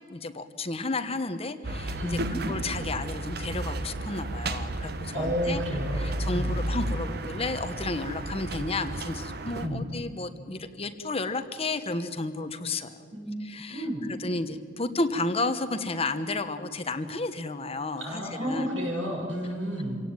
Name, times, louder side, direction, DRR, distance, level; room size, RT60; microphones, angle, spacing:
voice 1, 0.1-2.2 2.5-5.6 5.9-13.0 13.4-18.7, left 2 dB, 30° left, 9 dB, 1.2 m, -32 dB
sound 1, 1.6-9.7, right 1 dB, 55° right, 1.2 m, -33 dB
voice 2, 2.0-2.4 5.1-6.0 6.3-6.5 9.6-9.9 13.1-14.0 18.0-20.0, equal, 85° right, -1 dB, 7.5 m, -31 dB
27.5 x 17.0 x 9.1 m, 2.3 s
head